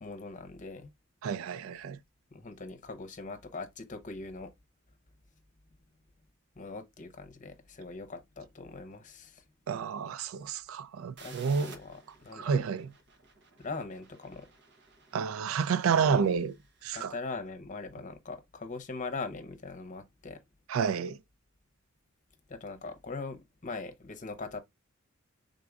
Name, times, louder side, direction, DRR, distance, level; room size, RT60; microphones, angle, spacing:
voice 1, 0.0-0.9 2.3-4.5 6.6-9.4 11.2-12.7 13.6-14.5 15.9-16.4 16.9-20.4 22.5-24.6, left 3 dB, 40° left, 0.8 m, -41 dB
voice 2, 1.2-2.0 9.7-11.7 12.3-12.9 15.1-16.5 16.8-17.1 20.7-21.2, right 6 dB, 80° right, 0.3 m, -29 dB
sound 1, 11.2-16.8, right 4 dB, 60° right, 0.9 m, -55 dB
5.0 x 3.7 x 2.3 m
head